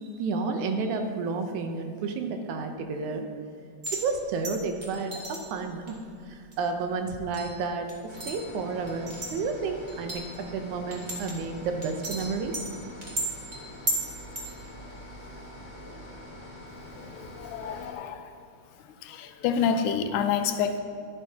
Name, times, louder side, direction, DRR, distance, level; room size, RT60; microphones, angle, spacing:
voice 1, 0.1-3.3 3.9-12.6, right 4 dB, 85° right, 5 dB, 2.3 m, -31 dB
sound 1, 3.8-4.0 4.4-5.4 5.9-6.0 6.5-6.6 7.3-7.5 7.9-8.4 8.9-9.3 9.9-10.4 10.9-11.5 11.8-12.7 13.0-14.0 14.4-14.5 14.9-15.0, right 1 dB, 30° right, 1.5 m, -34 dB
sound 2, 8.1-17.9, left 1 dB, 45° left, 1.9 m, -44 dB
voice 2, 17.0-18.3 19.0-20.8, left 7 dB, 85° left, 8 dB, 2.1 m, -28 dB
12.5 x 11.0 x 2.9 m, 2.4 s
omnidirectional pair, 3.4 m